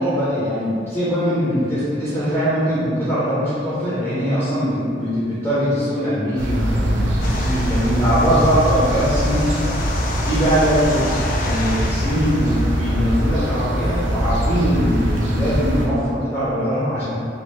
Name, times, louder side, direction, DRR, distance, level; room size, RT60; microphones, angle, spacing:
voice 1, 0.0-9.5 10.2-11.1 11.4-17.2, equal, 10° left, -13 dB, 0.8 m, -21 dB
sound 1, 6.4-15.9, equal, 80° right, 0.5 m, -22 dB
sound 2, 7.2-13.1, left 2 dB, 45° left, 0.3 m, -31 dB
3.1 x 2.7 x 2.8 m, 2.3 s
head